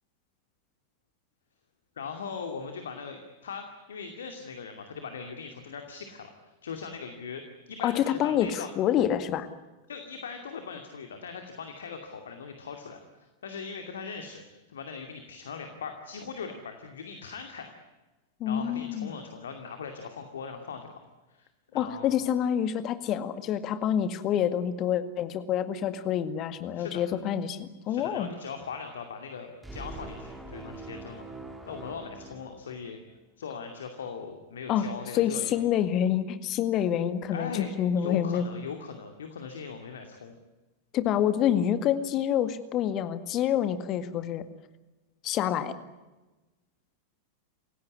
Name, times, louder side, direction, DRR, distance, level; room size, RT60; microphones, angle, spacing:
voice 1, 2.0-8.7 9.9-14.4 14.7-17.7 18.5-21.0 21.3-22.3 26.7-27.0 27.9-31.2 31.6-33.0 33.4-35.6 37.3-37.7 38.0-40.3, left 5 dB, 65° left, 6 dB, 2.5 m, -40 dB
voice 2, 7.8-9.5 18.4-19.1 21.7-28.3 34.7-34.8 35.1-38.4 40.9-44.4 45.2-45.8, left 10 dB, 35° left, 12 dB, 1.9 m, -27 dB
sound 1, 29.6-33.1, right 2 dB, 5° right, 4.4 m, -43 dB
28.5 x 16.5 x 9.8 m, 1.2 s
figure-of-eight pair, 90°, 0 cm